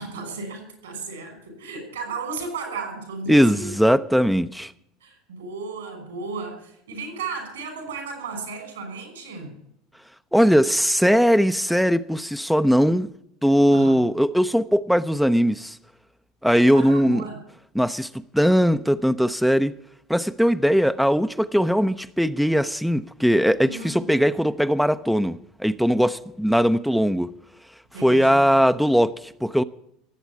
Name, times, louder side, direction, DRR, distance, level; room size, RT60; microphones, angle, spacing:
voice 1, 0.0-3.7 5.0-9.5 13.7-14.1 16.7-17.4 23.6-24.1 27.9-28.5, right 4 dB, 85° right, 5.5 m, -34 dB
voice 2, 3.3-4.7 10.3-13.1 13.4-15.8 16.4-17.2 17.7-19.7 20.1-27.3 28.0-29.6, equal, ahead, 0.6 m, -20 dB
17.5 x 8.1 x 8.4 m
hypercardioid pair, 75°, 0 cm